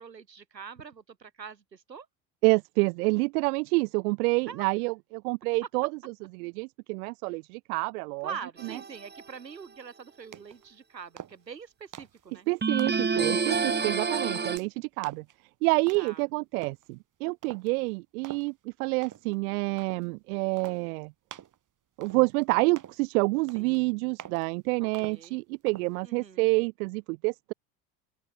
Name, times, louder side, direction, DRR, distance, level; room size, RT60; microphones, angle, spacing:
voice 1, 0.0-2.1 4.5-4.7 7.3-7.4 8.2-12.5 13.6-14.2 15.9-16.2 23.5-23.9 24.8-25.4 26.0-26.5, right 6 dB, 85° right, 7.8 m, -44 dB
voice 2, 2.4-5.9 6.3-8.3 12.5-15.2 15.6-21.1 22.0-27.5, right 26 dB, 60° right, 0.9 m, -28 dB
sound 1, 8.6-9.2 12.6-14.6, right 5 dB, 20° right, 3.4 m, -28 dB
sound 2, 10.3-10.7 11.2-11.5 11.9-12.3 12.8-13.1 13.6-13.9 14.4-14.7 15.0-15.3 15.9-16.2 16.6-16.9 17.4-17.7 18.2-18.5 19.0-19.4 19.8-20.1 20.6-20.8 21.3-21.6 22.0-22.4 22.8-23.0 23.5-23.8 24.2-24.5 24.9-25.3 25.7-25.9, right 10 dB, 40° right, 3.6 m, -46 dB
open air
figure-of-eight pair, 65°, 49 cm